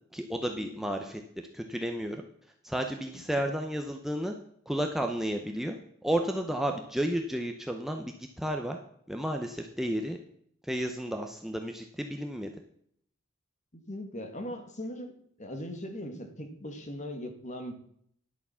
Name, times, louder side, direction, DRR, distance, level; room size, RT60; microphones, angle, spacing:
voice 1, 0.1-1.2 1.5-2.3 2.6-4.3 4.7-5.8 6.0-8.8 9.1-10.2 10.6-12.5, right 1 dB, ahead, 3 dB, 0.7 m, -32 dB
voice 2, 13.7-15.1 15.4-17.7, left 1 dB, 35° left, 5 dB, 1.6 m, -39 dB
11.0 x 6.9 x 5.6 m, 0.66 s
head